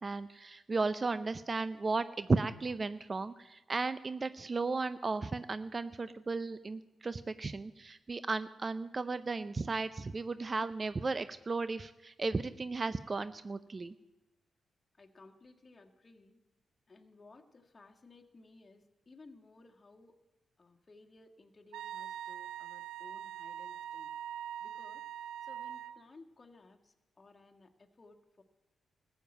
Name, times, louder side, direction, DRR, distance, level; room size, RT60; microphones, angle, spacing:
voice 1, 0.0-13.9, right 3 dB, 40° right, 13 dB, 0.6 m, -35 dB
voice 2, 15.0-16.4 16.9-20.2 20.6-24.1 24.6-25.0 25.4-28.4, left 3 dB, 40° left, 3 dB, 1.6 m, -58 dB
Wind instrument woodwind instrument, 21.7-26.0, right 10 dB, 85° right, 0.4 m, -43 dB
14.5 x 7.3 x 8.8 m, 1.0 s
supercardioid pair, 50°, 0 cm